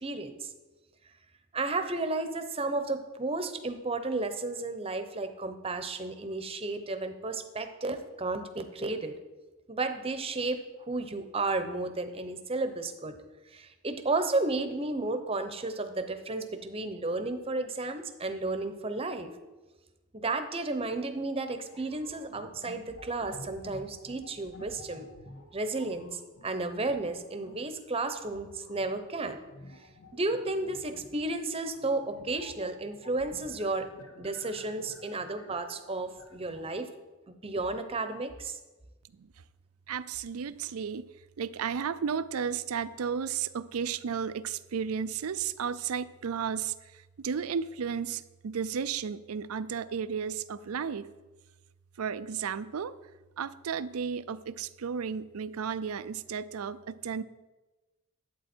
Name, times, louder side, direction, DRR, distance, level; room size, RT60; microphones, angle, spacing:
voice 1, 0.0-0.5 1.5-9.1 9.7-13.1 13.5-19.3 20.1-25.1 25.5-29.4 30.1-33.9 34.2-36.9 37.4-38.6, right 2 dB, 25° right, 8 dB, 0.8 m, -33 dB
sound 1, 21.7-27.7 28.2-36.7, left 1 dB, 65° left, 1.3 m, -51 dB
voice 2, 39.9-41.1 41.4-51.1 52.0-52.9 53.4-57.2, right 7 dB, 85° right, 15 dB, 0.5 m, -33 dB
11.0 x 8.2 x 4.4 m, 1.2 s
head